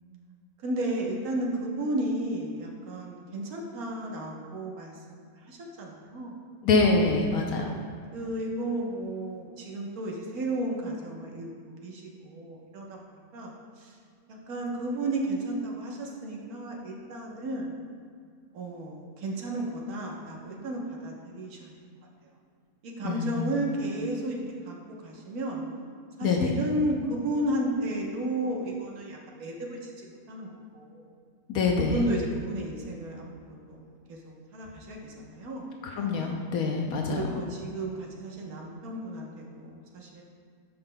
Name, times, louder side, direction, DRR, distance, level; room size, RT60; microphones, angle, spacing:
voice 1, 0.6-4.9 5.5-6.3 8.1-13.0 13.3-13.9 14.3-17.7 18.5-21.7 22.8-25.7 26.2-30.5 30.7-31.1 31.8-33.8 34.1-34.2 34.5-35.7 36.0-36.3 37.1-40.2, right 1 dB, 75° right, -1 dB, 1.5 m, -33 dB
voice 2, 6.6-7.7 23.0-23.5 26.2-26.5 31.5-32.0 35.8-37.2, left 3 dB, 75° left, 1 dB, 1.1 m, -25 dB
13.0 x 5.6 x 2.2 m, 2.2 s
omnidirectional pair, 1.6 m